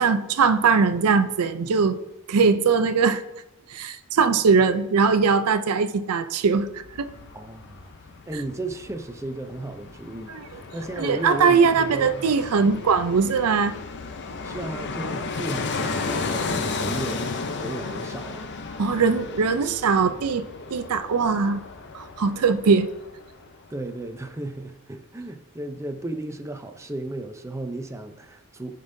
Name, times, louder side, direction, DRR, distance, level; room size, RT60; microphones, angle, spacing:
voice 1, 0.0-2.0 2.3-3.2 3.7-6.7 7.0-7.1 10.3-10.4 11.0-13.8 18.8-20.5 20.7-21.6 21.9-22.9, right 5 dB, 80° right, 0.5 m, -21 dB
Fixed-wing aircraft airplane, 6.6-23.5 23.8-23.9, left 3 dB, 50° left, 0.6 m, -34 dB
voice 2, 7.3-7.9 8.3-12.3 12.6-12.8 14.4-18.5 23.7-28.8, right 1 dB, 15° right, 0.6 m, -35 dB
15.5 x 5.3 x 2.7 m
head